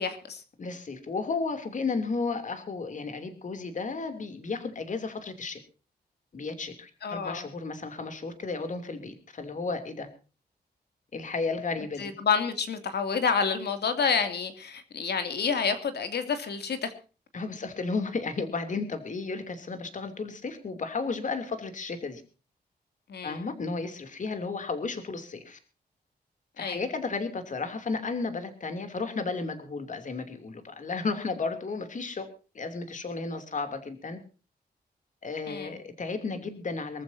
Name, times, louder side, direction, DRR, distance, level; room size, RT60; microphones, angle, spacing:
voice 1, 0.0-0.4 7.0-7.5 12.0-16.9 23.1-23.4 26.6-26.8 35.5-35.8, left 6 dB, 75° left, 8 dB, 2.7 m, -29 dB
voice 2, 0.6-5.6 6.3-10.1 11.1-12.1 17.3-22.2 23.2-25.6 26.6-32.3 32.5-34.2 35.2-37.0, left 4 dB, 50° left, 8 dB, 3.0 m, -33 dB
24.0 x 14.5 x 2.8 m, 0.35 s
wide cardioid pair, 130°, 17 cm